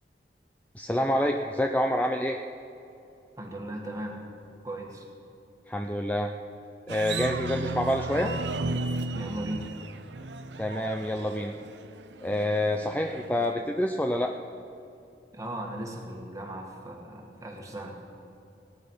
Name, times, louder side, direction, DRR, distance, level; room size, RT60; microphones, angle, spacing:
voice 1, 0.7-2.4 5.7-6.3 6.9-8.3 10.6-11.5 12.2-14.3, left 1 dB, 10° left, 3 dB, 0.5 m, -27 dB
voice 2, 3.4-4.2 4.6-5.1 9.1-9.7 15.3-18.0, right 1 dB, 20° right, 0 dB, 1.9 m, -37 dB
sound 1, 6.9-13.5, right 2 dB, 85° right, 0.8 m, -35 dB
18.5 x 9.8 x 5.7 m, 2.8 s
head